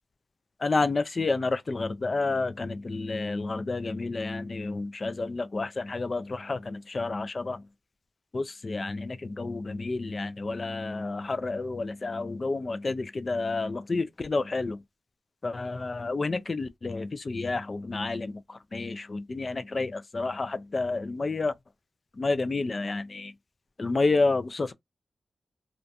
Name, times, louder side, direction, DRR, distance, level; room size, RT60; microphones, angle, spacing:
voice 1, 0.6-7.6 8.3-14.8 15.4-21.5 22.2-23.3 23.8-24.7, left 3 dB, 45° left, 0.3 m, -30 dB
2.5 x 2.2 x 2.6 m
cardioid pair, 65°, 0 cm